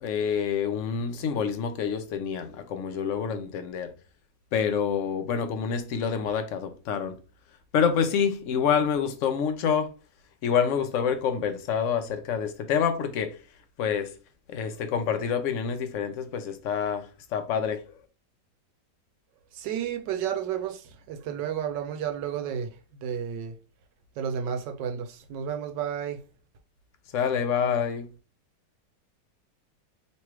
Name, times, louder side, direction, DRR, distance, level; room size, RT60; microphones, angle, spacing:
voice 1, 0.0-3.9 4.5-7.2 7.7-9.9 10.4-13.3 13.8-14.1 14.5-17.1 17.3-17.8 27.1-28.1, left 7 dB, 65° left, 0.8 m, -27 dB
voice 2, 19.5-23.6 24.2-26.2, right 8 dB, 85° right, 1.3 m, -32 dB
3.2 x 3.0 x 4.6 m
omnidirectional pair, 1.9 m